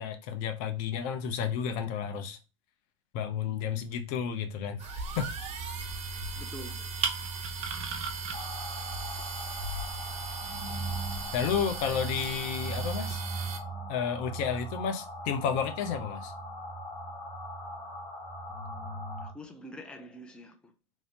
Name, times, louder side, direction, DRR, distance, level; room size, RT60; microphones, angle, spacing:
voice 1, 0.0-2.4 3.1-4.9 5.2-5.3 11.3-13.2 13.9-16.3, left 7 dB, 50° left, 0.7 m, -31 dB
sound 1, 4.8-13.6, right 4 dB, 40° right, 0.7 m, -36 dB
voice 2, 6.4-6.9 19.2-20.7, equal, 5° left, 0.5 m, -46 dB
sound 2, 8.3-19.3, right 2 dB, 30° left, 1.4 m, -39 dB
3.1 x 2.7 x 2.9 m
hypercardioid pair, 105°, 17 cm